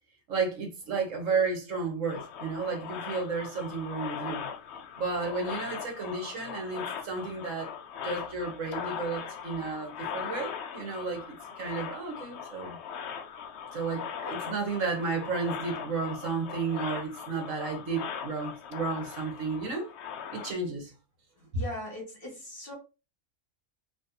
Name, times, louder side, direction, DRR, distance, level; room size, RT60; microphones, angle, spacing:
voice 1, 0.3-4.5 5.0-7.7 8.0-12.8 13.7-19.9 20.3-20.9 21.5-21.6, right 4 dB, 65° right, 1.5 m, -32 dB
sound 1, 2.1-20.5, left 7 dB, 60° left, 0.8 m, -40 dB
voice 2, 21.5-22.7, left 1 dB, 40° left, 1.8 m, -39 dB
4.1 x 3.2 x 2.7 m
omnidirectional pair, 1.4 m